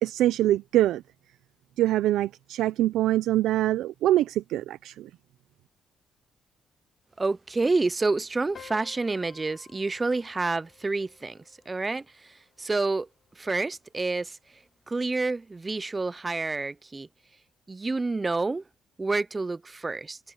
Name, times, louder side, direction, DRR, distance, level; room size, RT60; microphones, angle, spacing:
voice 1, 0.0-1.0 1.8-5.1, right 14 dB, 85° right, 0.5 m, -24 dB
voice 2, 7.2-11.4 11.7-12.0 12.6-13.1 13.4-14.4 14.9-17.1 17.7-18.6 19.0-20.2, right 3 dB, 25° right, 0.6 m, -28 dB
sound 1, 8.5-13.5, left 8 dB, 50° left, 4.2 m, -54 dB
cardioid pair, 90°, 0 cm